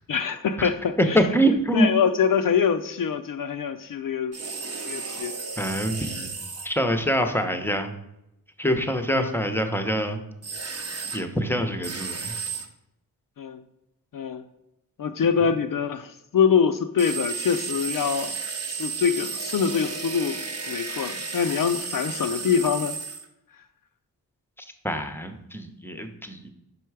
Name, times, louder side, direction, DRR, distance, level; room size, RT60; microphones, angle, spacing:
voice 1, 0.1-1.2 1.7-4.4 4.9-5.3 9.1-9.4 13.4-13.6 14.1-14.4 15.0-18.4 18.7-23.0, left 7 dB, 55° left, 8 dB, 0.5 m, -24 dB
voice 2, 1.1-1.9 5.6-6.3 6.6-7.9 8.6-10.2 11.1-12.3 24.8-26.5, equal, 5° left, 6 dB, 0.7 m, -25 dB
sound 1, 4.3-6.7 10.4-11.2 11.8-12.7 17.0-23.3, right 4 dB, 40° right, 0.8 m, -33 dB
5.4 x 4.5 x 4.7 m, 0.84 s
cardioid pair, 70°, 41 cm